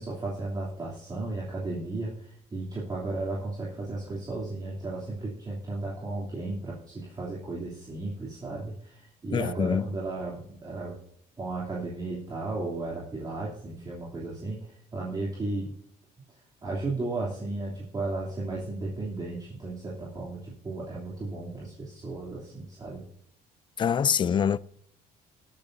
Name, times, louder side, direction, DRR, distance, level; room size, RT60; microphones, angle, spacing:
voice 1, 0.0-2.1 2.5-11.0 11.4-14.6 14.9-15.7 16.6-23.0, right 2 dB, 25° right, 3.0 m, -34 dB
voice 2, 9.3-9.9 23.8-24.6, left 7 dB, 30° left, 0.4 m, -25 dB
20.0 x 8.9 x 2.7 m
cardioid pair, 125°, 16 cm